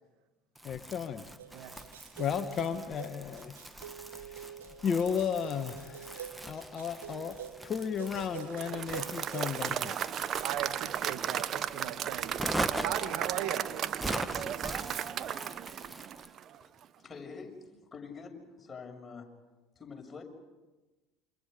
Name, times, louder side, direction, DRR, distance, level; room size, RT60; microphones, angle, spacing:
Crumpling crinkling, 0.5-16.3, right 1 dB, 10° right, 1.5 m, -42 dB
voice 1, 0.6-1.2 2.2-3.5 4.1-4.5 4.8-7.4 7.6-10.0, left 7 dB, 40° left, 8 dB, 1.3 m, -34 dB
sound 1, 1.4-9.6, right 8 dB, 85° right, 2.9 m, -46 dB
Applause / Crowd, 8.4-16.6, right 9 dB, 45° right, 0.9 m, -35 dB
voice 2, 10.4-12.4 12.8-13.7, right 10 dB, 60° right, 7 dB, 2.2 m, -37 dB
voice 3, 17.0-17.6 17.9-19.3 19.8-20.2, left 5 dB, 25° left, 1 dB, 6.5 m, -45 dB
29.0 x 26.5 x 5.3 m, 1.2 s
hypercardioid pair, 70°, 0 cm